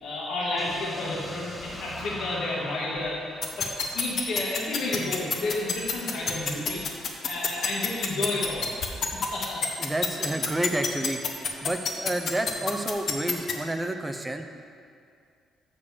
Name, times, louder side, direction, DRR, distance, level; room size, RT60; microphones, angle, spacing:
voice 1, 0.0-3.7 3.9-6.8 7.2-8.7 9.3-9.6, left 2 dB, 60° left, -5 dB, 1.6 m, -31 dB
sound 1, 0.6-4.5, left 1 dB, 15° left, 1.0 m, -40 dB
sound 2, 3.4-13.5, left 6 dB, 45° left, 0.8 m, -26 dB
voice 2, 9.8-11.2 11.6-14.5, right 1 dB, 10° right, 6 dB, 0.5 m, -30 dB
6.6 x 5.3 x 7.0 m, 2.3 s
cardioid pair, 150°, 0 cm